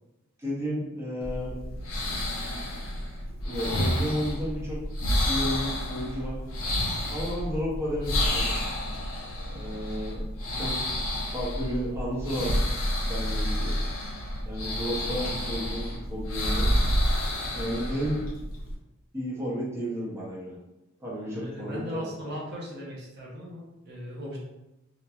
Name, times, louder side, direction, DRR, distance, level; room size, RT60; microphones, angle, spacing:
voice 1, 0.4-1.6 2.5-2.6 3.4-4.8 5.2-6.4 7.1-8.5 9.5-10.2 10.5-10.8 11.3-13.7 14.5-16.7 17.6-18.3 19.1-20.6 21.0-22.1, equal, 10° right, -8 dB, 0.6 m, -32 dB
sound 1, 1.2-18.7, equal, 80° left, 0.6 m, -29 dB
voice 2, 21.1-24.4, equal, 50° right, -4 dB, 0.6 m, -38 dB
2.9 x 2.1 x 2.3 m, 0.94 s
head